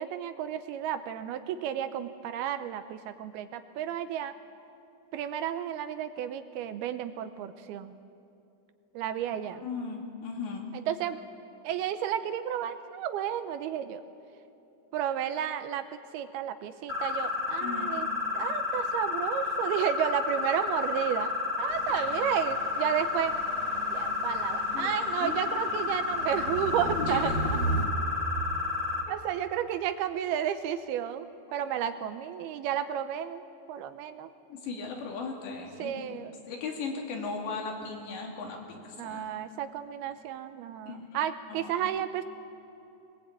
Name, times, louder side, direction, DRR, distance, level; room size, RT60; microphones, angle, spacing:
voice 1, 0.0-4.3 5.1-7.9 8.9-9.6 10.9-11.2 11.6-14.0 14.9-15.9 16.1-18.1 18.3-21.3 21.6-23.3 23.9-27.3 29.1-33.4 33.7-34.3 35.8-36.3 39.0-42.2, right 10 dB, 80° right, 10 dB, 2.5 m, -32 dB
voice 2, 9.4-10.7 17.6-18.0 21.9-22.1 24.7-25.5 26.9-27.4 34.5-36.2 36.5-39.3 40.9-41.1 41.5-41.7, left 4 dB, 85° left, 0 dB, 5.0 m, -37 dB
sound 1, 16.9-29.0, left 4 dB, 15° left, 1.1 m, -31 dB
sound 2, 21.7-27.9, right 2 dB, 40° left, 1.1 m, -37 dB
21.5 x 20.5 x 8.9 m, 2.8 s
omnidirectional pair, 4.9 m